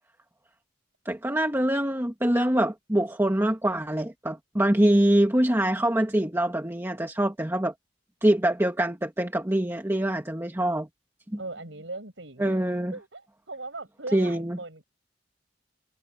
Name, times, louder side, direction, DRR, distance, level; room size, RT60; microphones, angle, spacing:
voice 1, 1.1-7.7 8.2-10.9 11.3-11.4 12.4-12.9 14.1-14.6, right 1 dB, 15° right, 1.6 m, -24 dB
voice 2, 11.4-12.6 12.9-14.8, right 2 dB, 80° right, 6.9 m, -39 dB
head